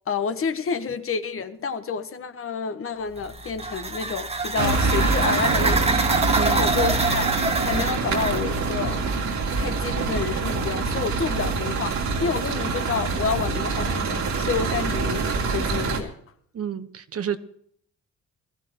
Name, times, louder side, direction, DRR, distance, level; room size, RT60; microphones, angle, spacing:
voice 1, 0.1-7.3 7.6-9.0 9.5-16.1, left 6 dB, 45° left, 1.3 m, -29 dB
sound 1, 3.2-8.5, right 3 dB, 20° right, 1.4 m, -26 dB
sound 2, 4.6-16.0, right 4 dB, 65° right, 2.9 m, -25 dB
voice 2, 16.5-17.4, right 8 dB, 50° right, 1.2 m, -30 dB
22.0 x 14.0 x 3.0 m
cardioid pair, 90°, 30 cm